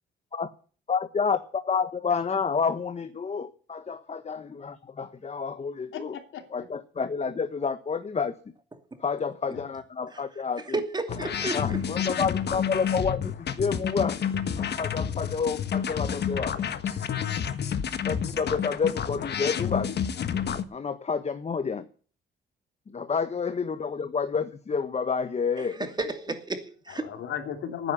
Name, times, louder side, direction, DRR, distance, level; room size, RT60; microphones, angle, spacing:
voice 1, 0.9-6.2 6.5-8.3 9.0-10.8 11.5-14.2 14.6-16.5 16.8-17.0 18.0-19.9 20.7-21.8 22.9-25.9, left 5 dB, 35° left, 1.3 m, -29 dB
voice 2, 5.9-6.7 7.0-7.1 9.5-9.6 26.9-27.9, left 9 dB, 75° left, 3.1 m, -35 dB
voice 3, 10.7-11.8 25.8-27.1, right 2 dB, 20° right, 2.6 m, -32 dB
sound 1, 11.1-20.6, left 8 dB, 55° left, 1.5 m, -29 dB
12.0 x 9.6 x 8.5 m
cardioid pair, 90°, 20 cm